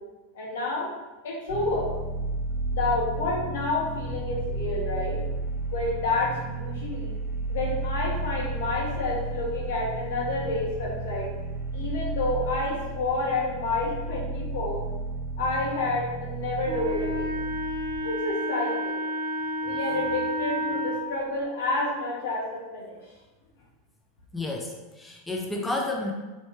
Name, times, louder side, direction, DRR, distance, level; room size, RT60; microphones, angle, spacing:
voice 1, 0.3-0.9 1.2-1.9 2.7-5.2 5.7-7.1 7.5-11.3 11.7-14.8 15.4-17.3 18.0-19.0 19.6-23.0, left 2 dB, 80° left, -3 dB, 1.3 m, -29 dB
sound 1, 1.5-18.0, right 2 dB, 40° right, 1.2 m, -33 dB
Wind instrument woodwind instrument, 16.6-21.0, equal, 85° right, 1.0 m, -30 dB
voice 2, 24.3-26.1, left 2 dB, 10° left, 0 dB, 0.5 m, -31 dB
4.1 x 3.2 x 3.1 m, 1.2 s
supercardioid pair, 120°, 0 cm